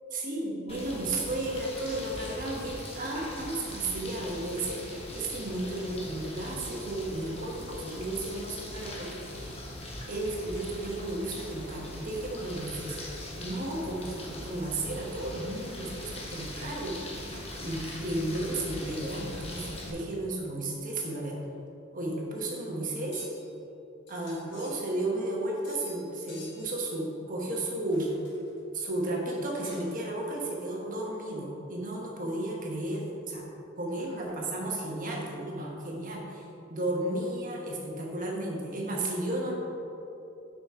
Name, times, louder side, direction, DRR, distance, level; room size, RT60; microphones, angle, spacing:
voice 1, 0.1-9.6 10.1-13.0 13.4-21.4 21.9-23.2 24.1-28.1 28.7-33.5 33.8-39.6, right 1 dB, 45° right, -2 dB, 1.3 m, -33 dB
sound 1, 0.7-19.9, left 1 dB, 30° left, 1.1 m, -41 dB
sound 2, 22.8-23.5 24.1-25.2 25.6-26.0 26.3-26.8 27.9-28.6 29.2-30.1, left 2 dB, 60° left, 1.4 m, -51 dB
6.0 x 5.2 x 5.1 m, 2.8 s
head